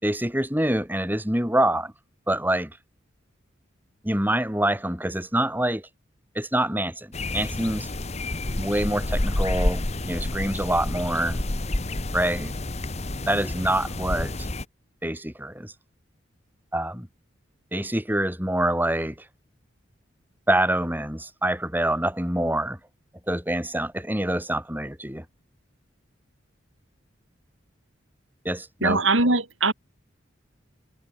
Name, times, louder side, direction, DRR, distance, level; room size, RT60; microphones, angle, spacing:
voice 1, 0.0-1.9 2.3-2.7 4.0-5.9 6.3-7.9 8.6-11.4 12.1-12.5 13.3-14.5 15.0-15.7 16.7-17.1 17.7-19.1 20.5-22.8 23.3-25.2 28.4-29.0, right 1 dB, 10° right, 6.4 m, -26 dB
sound 1, 7.1-14.6, left 1 dB, 35° left, 1.4 m, -29 dB
voice 2, 28.8-29.7, right 3 dB, 85° right, 7.4 m, -21 dB
head